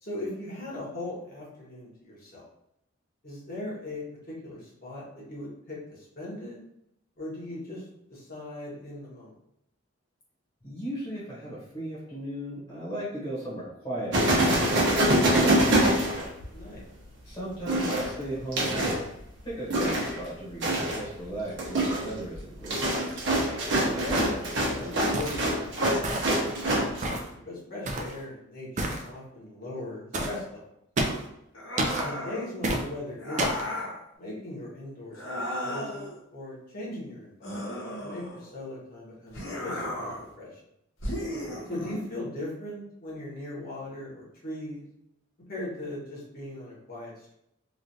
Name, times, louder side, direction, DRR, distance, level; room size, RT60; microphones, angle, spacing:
voice 1, 0.0-2.4 3.2-6.6 7.2-9.3 16.5-16.8 23.8-26.0 26.3-26.9 27.5-30.6 32.0-33.8 34.2-37.6 38.0-40.6 41.7-44.8 45.5-47.3, left 1 dB, 45° left, -6 dB, 1.1 m, -39 dB
voice 2, 10.6-14.9 15.2-16.3 17.2-19.0 19.4-22.8 41.7-41.9, right 1 dB, 25° left, -6 dB, 1.0 m, -36 dB
sound 1, 14.1-16.8 17.7-19.0 19.7-20.3 20.6-21.1 21.5-27.1, right 1 dB, 60° right, 0.8 m, -25 dB
sound 2, 25.1-25.5 26.0-26.5 27.0-27.3 27.9-28.2 28.8-29.0 30.1-30.4 31.0-31.3 31.8-32.1 32.6-32.8 33.4-33.7, right 1 dB, 40° right, 0.4 m, -29 dB
sound 3, 31.5-32.5 33.2-34.0 35.1-36.2 37.4-38.6 39.3-40.3 41.0-42.0, left 1 dB, 65° left, 0.8 m, -35 dB
3.1 x 2.4 x 2.7 m, 0.80 s
head